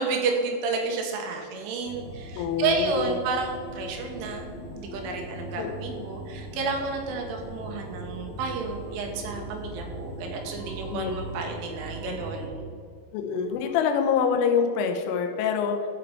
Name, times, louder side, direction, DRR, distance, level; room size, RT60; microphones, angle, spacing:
voice 1, 0.0-12.8, right 4 dB, 85° right, 2 dB, 3.6 m, -31 dB
sound 1, 1.8-12.5, right 1 dB, 55° right, 2.4 m, -39 dB
voice 2, 2.4-3.2 5.6-6.0 10.9-11.1 13.1-15.9, left 6 dB, 90° left, 4 dB, 3.4 m, -26 dB
12.5 x 5.0 x 4.7 m, 2.1 s
omnidirectional pair, 5.5 m